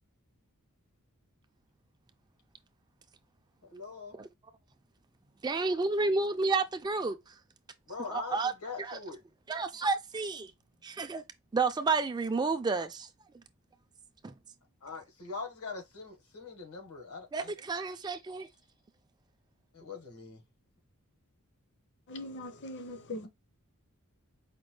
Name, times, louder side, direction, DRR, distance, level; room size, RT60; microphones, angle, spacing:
voice 1, 3.6-4.1 7.9-9.2 14.8-17.5 19.7-20.4, left 4 dB, 85° left, 1.4 m, -42 dB
voice 2, 5.4-7.3 8.1-8.5 8.8-9.0 9.5-10.5 10.8-11.2 11.5-13.1 14.2-14.3 17.3-18.5, right 3 dB, 20° right, 0.3 m, -31 dB
voice 3, 22.1-23.3, left 1 dB, 50° left, 0.7 m, -40 dB
5.1 x 2.2 x 3.1 m
head